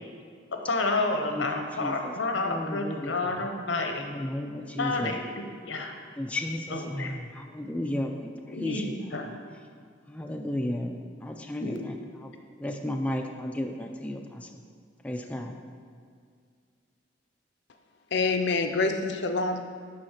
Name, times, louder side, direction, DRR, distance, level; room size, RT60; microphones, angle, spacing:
voice 1, 0.7-4.0 4.8-5.9 6.7-7.1 8.5-9.3 11.6-11.8, left 2 dB, 85° left, 4 dB, 0.9 m, -30 dB
voice 2, 1.3-3.1 3.4-3.5 4.0-5.1 6.2-9.4 10.1-12.3 12.6-14.5 15.0-15.6, left 1 dB, 5° left, 3 dB, 0.4 m, -34 dB
voice 3, 18.1-19.6, left 3 dB, 65° left, 6 dB, 0.6 m, -26 dB
7.9 x 4.1 x 5.7 m, 2.1 s
head